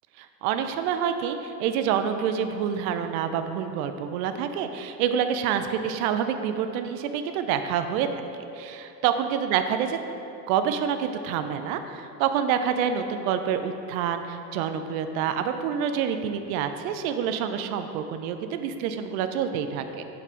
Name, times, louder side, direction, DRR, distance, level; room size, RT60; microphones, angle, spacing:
voice 1, 0.2-8.2 8.5-10.0 10.5-20.0, right 8 dB, 60° right, 8 dB, 0.7 m, -27 dB
7.6 x 5.3 x 4.0 m, 2.8 s
hypercardioid pair, 85°, 49 cm